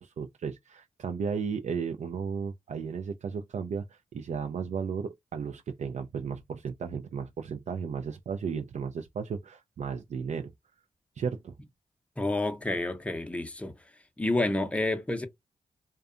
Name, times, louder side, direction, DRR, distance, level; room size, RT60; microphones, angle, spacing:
voice 1, 0.0-10.5 11.2-11.5, right 6 dB, 55° right, 0.4 m, -34 dB
voice 2, 12.2-13.7 14.2-15.3, left 2 dB, 10° left, 0.6 m, -29 dB
2.6 x 2.2 x 2.4 m
cardioid pair, 50°, 14 cm